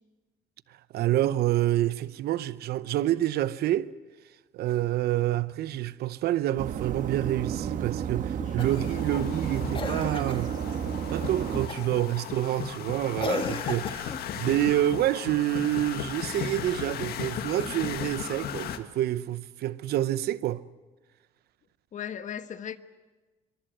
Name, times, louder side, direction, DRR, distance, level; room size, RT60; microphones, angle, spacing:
voice 1, 0.7-3.9 4.5-10.6 11.1-20.6, right 13 dB, 70° right, 0.8 m, -28 dB
sound 1, 6.6-11.7, right 8 dB, 50° right, 1.4 m, -32 dB
voice 2, 8.4-9.0 11.9-12.0 21.9-22.8, left 9 dB, 45° left, 1.3 m, -38 dB
sound 2, 8.6-18.8, left 9 dB, 65° left, 1.7 m, -36 dB
Cough, 8.6-9.0 9.7-10.5 11.7-12.0 13.2-14.3 17.4-18.2 19.6-19.7, left 5 dB, 30° left, 1.8 m, -35 dB
23.5 x 23.5 x 8.0 m
cardioid pair, 110°, 17 cm